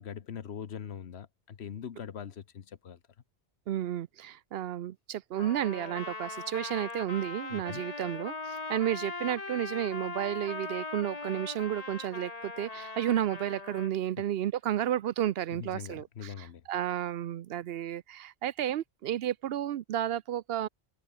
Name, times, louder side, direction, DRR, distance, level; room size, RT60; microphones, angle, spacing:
voice 1, 0.0-3.0 7.5-7.8 15.5-16.6, left 8 dB, 75° left, 1.2 m, -42 dB
voice 2, 3.7-20.7, right 11 dB, 70° right, 0.8 m, -32 dB
Trumpet, 5.4-13.9, left 3 dB, 35° left, 1.8 m, -40 dB
omnidirectional pair, 1.1 m